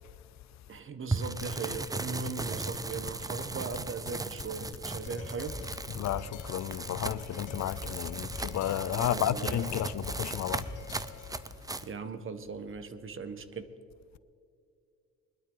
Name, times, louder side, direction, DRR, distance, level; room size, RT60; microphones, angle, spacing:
voice 1, 0.7-5.6 8.9-9.8 11.8-13.7, right 4 dB, 45° right, 1.2 m, -39 dB
sound 1, 1.1-11.9, right 3 dB, 10° right, 0.6 m, -38 dB
sound 2, 1.4-4.8 5.0-8.8 9.0-9.4 9.7-10.1, left 9 dB, 50° left, 0.9 m, -45 dB
sound 3, 4.6-11.5, left 2 dB, 80° left, 2.2 m, -44 dB
voice 2, 6.0-11.0, left 12 dB, 65° left, 0.6 m, -32 dB
21.0 x 12.0 x 3.9 m
cardioid pair, 90°, 30 cm